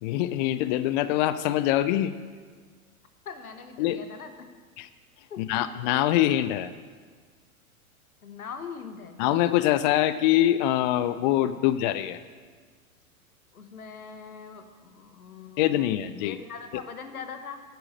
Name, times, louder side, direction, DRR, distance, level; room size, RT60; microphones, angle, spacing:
voice 1, 0.0-2.1 3.8-4.0 4.8-4.9 5.4-6.7 9.2-12.2 15.6-16.4, left 13 dB, 35° left, 13 dB, 0.4 m, -24 dB
voice 2, 3.2-4.5 5.3-5.4 8.2-9.2 13.5-17.6, left 6 dB, 80° left, 8 dB, 1.3 m, -41 dB
9.6 x 9.1 x 6.5 m, 1.5 s
figure-of-eight pair, 95°, 43 cm